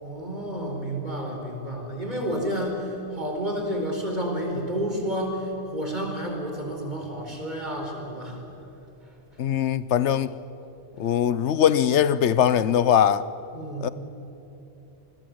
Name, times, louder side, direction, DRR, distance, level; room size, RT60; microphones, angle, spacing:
voice 1, 0.0-8.4 13.5-13.9, equal, 40° right, 4.8 m, -30 dB
voice 2, 9.4-10.3 11.0-13.2 13.8-13.9, left 9 dB, 90° left, 1.1 m, -21 dB
28.0 x 20.5 x 7.9 m
omnidirectional pair, 1.1 m